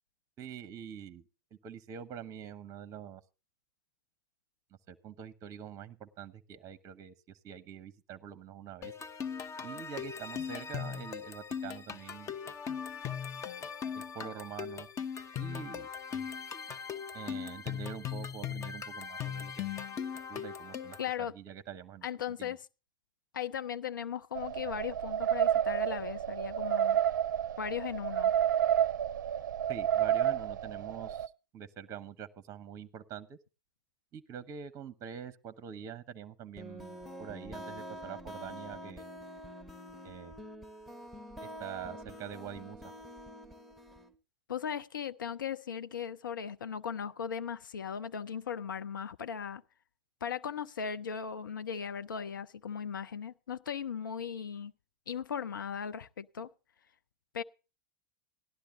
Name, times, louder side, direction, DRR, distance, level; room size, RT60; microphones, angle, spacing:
voice 1, 0.4-1.2 1.6-3.2 4.9-8.9 9.6-12.3 13.9-14.9 15.4-15.9 17.1-19.7 20.3-22.1 22.4-22.6 29.7-33.4 34.1-39.1 40.0-40.4 41.6-42.9, right 8 dB, 30° right, 0.8 m, -45 dB
sound 1, 8.8-21.1, left 7 dB, 30° left, 0.9 m, -39 dB
voice 2, 21.0-21.3 22.0-22.6 23.3-27.0 27.6-28.3 44.5-49.6 50.2-54.7 55.1-56.5 57.3-57.4, left 7 dB, 80° left, 0.5 m, -37 dB
sound 2, 24.4-31.3, right 10 dB, 70° right, 0.5 m, -30 dB
sound 3, 36.6-44.1, equal, ahead, 1.3 m, -46 dB
17.5 x 11.5 x 2.6 m
figure-of-eight pair, 95°, 11 cm